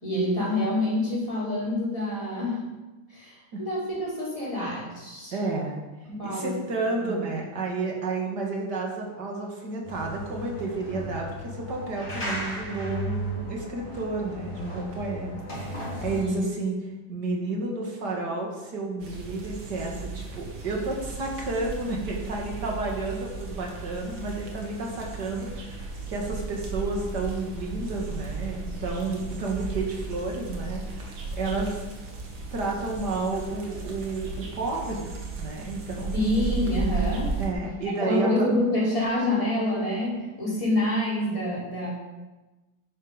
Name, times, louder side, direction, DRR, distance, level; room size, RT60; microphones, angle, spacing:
voice 1, 0.0-2.6 3.1-5.3 6.0-6.6 6.9-7.1 16.1-16.4 36.1-37.3 38.0-41.9, left 1 dB, 15° left, -7 dB, 4.5 m, -27 dB
voice 2, 5.3-5.8 6.2-16.8 17.1-31.8 32.5-35.0 35.4-36.2 37.4-38.5, right 3 dB, 55° right, -1 dB, 2.8 m, -31 dB
sound 1, 9.8-16.2, right 1 dB, 35° left, 3.7 m, -35 dB
sound 2, 19.0-37.5, right 4 dB, 75° right, 2.6 m, -35 dB
10.5 x 10.0 x 5.2 m, 1.2 s
omnidirectional pair, 2.1 m